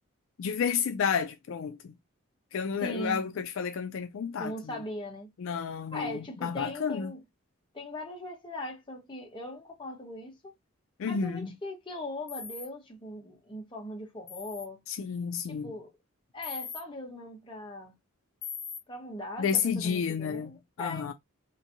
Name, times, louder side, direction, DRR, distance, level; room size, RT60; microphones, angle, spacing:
voice 1, 0.4-1.9 2.5-4.8 5.4-7.1 11.0-11.5 14.9-15.7 19.4-21.1, left 6 dB, 70° left, 0.4 m, -31 dB
voice 2, 2.8-3.2 4.4-5.3 5.9-7.2 7.7-10.5 11.0-14.8 15.5-15.9 16.3-17.9 18.9-21.1, left 1 dB, 25° left, 0.8 m, -39 dB
sound 1, 12.3-12.7 14.3-14.6 16.4-16.8 18.4-18.8, left 6 dB, 55° left, 0.7 m, -40 dB
2.9 x 2.6 x 2.5 m
head